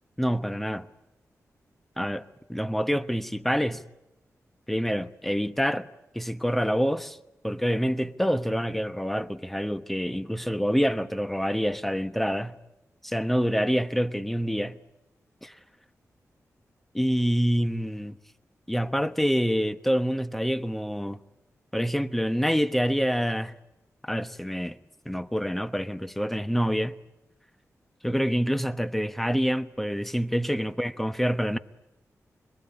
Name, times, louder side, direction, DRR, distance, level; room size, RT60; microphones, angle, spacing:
voice 1, 0.2-0.9 2.0-3.8 4.7-5.9 6.1-7.2 7.4-12.5 13.0-14.8 15.4-15.5 16.9-18.2 18.7-21.2 21.7-23.5 24.0-24.8 25.0-27.0 28.0-31.6, equal, 5° left, 1.0 m, -26 dB
26.5 x 22.0 x 10.0 m
wide cardioid pair, 125°, 6 cm